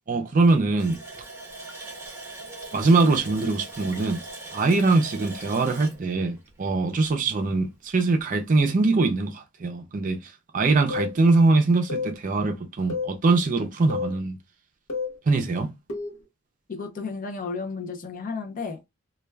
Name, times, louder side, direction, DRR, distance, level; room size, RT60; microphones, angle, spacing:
voice 1, 0.1-1.0 2.7-4.2 4.5-14.4 15.3-15.7, right 3 dB, 40° right, 0.4 m, -22 dB
Water tap faucet, 0.8-7.3 7.6-7.7 8.2-8.3, right 2 dB, 15° right, 0.8 m, -41 dB
sound 1, 10.9-11.1 11.9-12.1 12.9-13.1 13.9-14.1 14.9-15.1 15.9-16.2, left 4 dB, 85° left, 0.8 m, -30 dB
voice 2, 16.7-18.9, left 4 dB, 40° left, 0.5 m, -33 dB
2.2 x 2.2 x 3.2 m
head